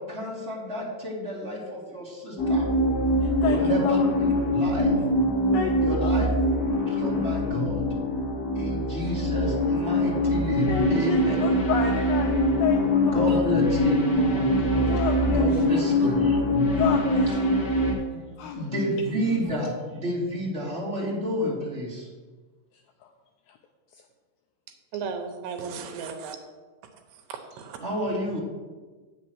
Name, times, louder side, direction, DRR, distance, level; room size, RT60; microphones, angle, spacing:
voice 1, 0.0-2.7 3.4-4.9 5.8-6.3 6.8-7.8 8.5-11.3 13.0-14.9 15.3-16.4 18.1-22.1 27.8-28.4, equal, 20° right, -8 dB, 1.8 m, -31 dB
sound 1, 2.4-17.9, left 1 dB, 40° left, 1.4 m, -23 dB
voice 2, 3.2-4.1 5.5-6.1 10.7-13.3 14.9-15.9 16.7-17.4 18.4-18.9 23.5-23.6, left 8 dB, 85° left, 3 dB, 2.2 m, -31 dB
voice 3, 24.9-26.4 27.3-27.8, right 6 dB, 80° right, 5 dB, 2.8 m, -35 dB
8.7 x 6.5 x 6.1 m, 1.3 s
omnidirectional pair, 4.9 m